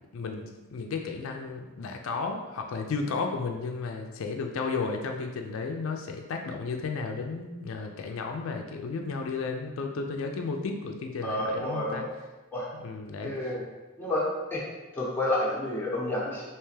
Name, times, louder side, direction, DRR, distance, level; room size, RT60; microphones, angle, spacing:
voice 1, 0.1-12.0 12.8-13.4, left 4 dB, 65° left, 3 dB, 0.4 m, -33 dB
voice 2, 11.2-12.1 12.5-12.7 13.2-13.6 14.0-14.6 14.9-16.4, left 1 dB, 10° left, -7 dB, 0.7 m, -30 dB
3.3 x 2.8 x 3.2 m, 1.1 s
head